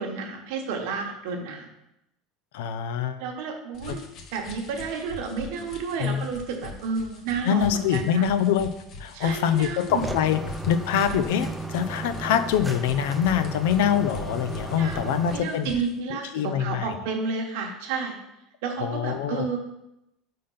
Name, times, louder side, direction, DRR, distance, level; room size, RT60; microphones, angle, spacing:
voice 1, 0.0-1.7 3.2-4.0 4.3-8.3 9.1-10.1 14.8-18.1 18.6-19.6, right 5 dB, 75° right, 2 dB, 1.2 m, -31 dB
voice 2, 2.5-3.2 3.9-4.0 6.0-6.3 7.5-8.7 9.0-10.4 10.7-15.7 16.1-16.9 18.8-19.5, left 9 dB, 85° left, 10 dB, 0.5 m, -24 dB
sound 1, 3.7-16.0, left 3 dB, 45° left, 1.0 m, -42 dB
sound 2, 9.9-15.4, right 3 dB, 5° right, 0.4 m, -35 dB
5.2 x 3.8 x 5.5 m, 0.87 s
supercardioid pair, 135°, 0 cm